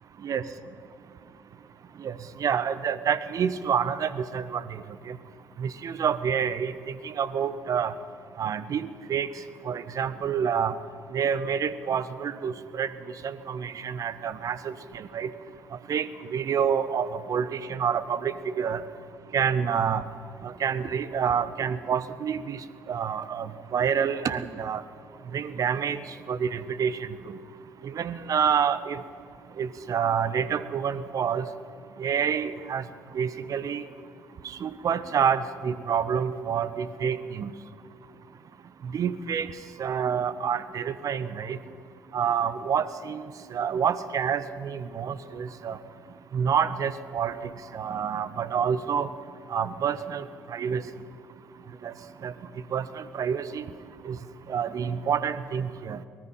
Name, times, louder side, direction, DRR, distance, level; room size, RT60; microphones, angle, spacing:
voice 1, 2.4-4.6 5.1-5.2 5.6-7.9 8.4-9.3 9.6-10.7 11.1-12.9 13.2-15.3 15.9-18.8 19.3-20.0 20.4-22.6 22.9-24.8 25.3-26.0 26.3-27.0 27.3-27.4 27.8-29.0 29.6-31.5 32.0-32.8 33.1-33.8 34.6-37.5 38.9-39.5 39.8-41.6 42.1-43.2 43.5-45.8 46.3-47.3 47.7-49.1 49.5-50.8 51.8-51.9 52.2-52.3 52.7-53.6 54.0-54.2 54.5-56.0, right 7 dB, 50° right, 14 dB, 1.1 m, -28 dB
24.0 x 19.5 x 5.7 m, 2.4 s
figure-of-eight pair, 45°, 8 cm